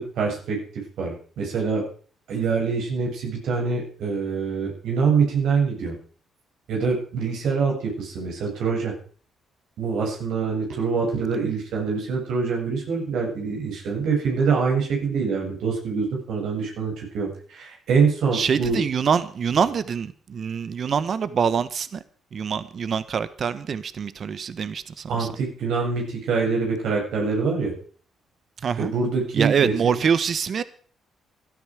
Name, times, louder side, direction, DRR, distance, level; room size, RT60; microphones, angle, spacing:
voice 1, 0.0-1.9 2.3-5.9 6.7-8.9 9.8-18.8 25.1-27.7 28.8-30.0, right 5 dB, 80° right, 0 dB, 7.5 m, -25 dB
voice 2, 18.3-22.0 22.3-25.3 28.6-28.9 29.3-30.6, right 6 dB, 50° right, 14 dB, 1.2 m, -25 dB
17.0 x 13.0 x 4.9 m, 0.43 s
cardioid pair, 90°, 0 cm